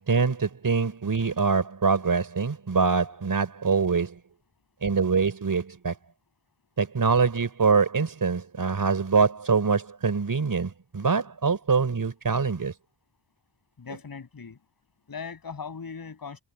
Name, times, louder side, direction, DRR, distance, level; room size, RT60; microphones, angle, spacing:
voice 1, 0.0-4.2 4.8-5.9 6.8-12.7, right 5 dB, 50° right, 5.0 m, -24 dB
voice 2, 13.8-14.6 15.1-16.4, left 5 dB, 55° left, 7.9 m, -39 dB
cardioid pair, 65°, 42 cm